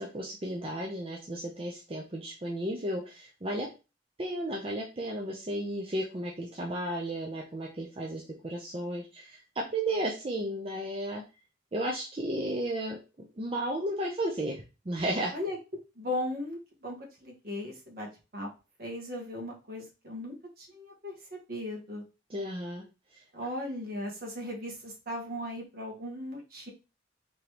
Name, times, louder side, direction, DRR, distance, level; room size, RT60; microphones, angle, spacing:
voice 1, 0.0-3.7 4.2-11.2 11.7-13.0 13.4-15.3 22.3-22.8 23.1-23.2, right 1 dB, 30° right, -1 dB, 0.7 m, -33 dB
voice 2, 15.9-18.1 18.3-18.5 18.8-21.1 21.5-22.0 23.3-26.7, left 1 dB, 50° right, 0 dB, 1.5 m, -37 dB
4.3 x 2.9 x 3.3 m, 0.30 s
head